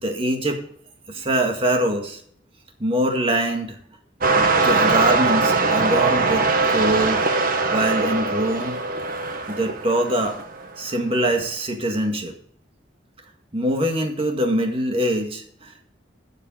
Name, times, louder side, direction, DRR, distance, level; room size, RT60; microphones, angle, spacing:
voice 1, 0.0-0.6 1.1-2.2 2.8-3.8 4.3-7.3 7.7-8.8 9.5-10.4 10.8-12.3 13.5-15.8, right 1 dB, 30° right, 3 dB, 1.9 m, -23 dB
sound 1, 4.2-10.6 11.3-11.4, right 3 dB, 50° right, 1.3 m, -21 dB
12.5 x 6.8 x 5.0 m, 0.63 s
head